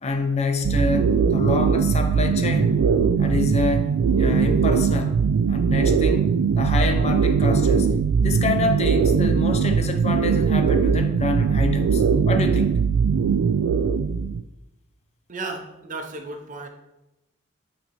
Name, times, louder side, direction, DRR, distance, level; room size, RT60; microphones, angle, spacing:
voice 1, 0.0-2.8 3.2-5.2 5.5-7.9 8.2-12.7, left 3 dB, 35° left, 6 dB, 0.5 m, -27 dB
sound 1, 0.6-14.4, right 6 dB, 90° right, 0.3 m, -20 dB
voice 2, 15.3-16.7, right 3 dB, 40° right, 4 dB, 0.7 m, -34 dB
8.3 x 3.8 x 3.0 m, 0.94 s
head